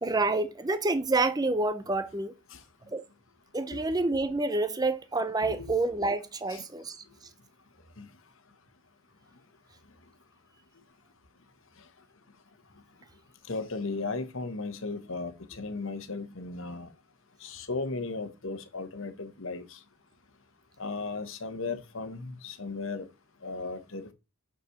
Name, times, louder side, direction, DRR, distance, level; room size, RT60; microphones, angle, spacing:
voice 1, 0.0-2.3 2.9-3.0 3.5-7.0, right 2 dB, 20° right, 0.6 m, -28 dB
voice 2, 13.5-16.9 17.4-19.6 20.8-23.0 23.4-24.1, left 3 dB, 65° left, 1.2 m, -35 dB
6.1 x 5.5 x 6.5 m
head